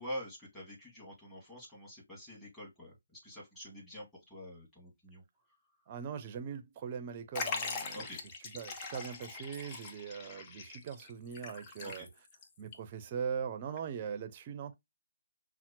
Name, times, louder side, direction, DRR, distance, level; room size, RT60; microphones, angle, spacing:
voice 1, 0.0-5.2 7.9-8.2 11.8-12.1, equal, 5° left, 2.0 m, -46 dB
voice 2, 5.9-8.1 8.5-12.1 12.6-14.7, right 7 dB, 30° right, 0.6 m, -40 dB
Liquid, 7.3-12.4 12.7-12.8 13.8-13.9, left 4 dB, 25° left, 0.6 m, -41 dB
5.7 x 2.1 x 2.8 m
figure-of-eight pair, 145°, 0 cm